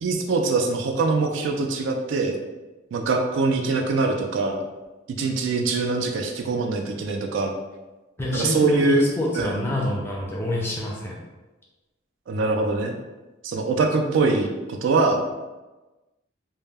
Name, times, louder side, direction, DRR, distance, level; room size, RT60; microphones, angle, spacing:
voice 1, 0.0-2.4 2.9-4.6 5.2-7.5 8.3-9.0 9.3-9.6 12.3-13.0 13.4-15.3, right 3 dB, 65° right, 3 dB, 0.3 m, -23 dB
voice 2, 8.2-11.1, left 1 dB, 10° left, -3 dB, 0.4 m, -27 dB
2.1 x 2.1 x 3.2 m, 1.1 s
head